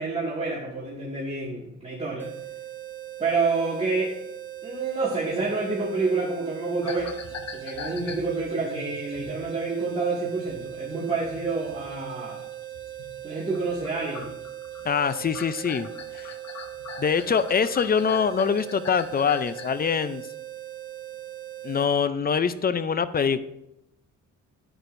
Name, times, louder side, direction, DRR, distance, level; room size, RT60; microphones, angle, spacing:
voice 1, 0.0-2.3 3.2-4.2 4.6-7.1 7.5-12.4 13.2-14.3, right 3 dB, 20° right, -7 dB, 2.1 m, -28 dB
sound 1, 2.2-21.9, right 13 dB, 5° left, 1.8 m, -40 dB
sound 2, 6.8-13.3 13.5-19.9, left 5 dB, 55° left, 1.0 m, -43 dB
voice 2, 14.8-16.3 17.0-20.2 21.6-23.4, left 6 dB, 30° left, 14 dB, 0.5 m, -24 dB
10.5 x 8.9 x 2.6 m, 0.86 s
cardioid pair, 90°, 30 cm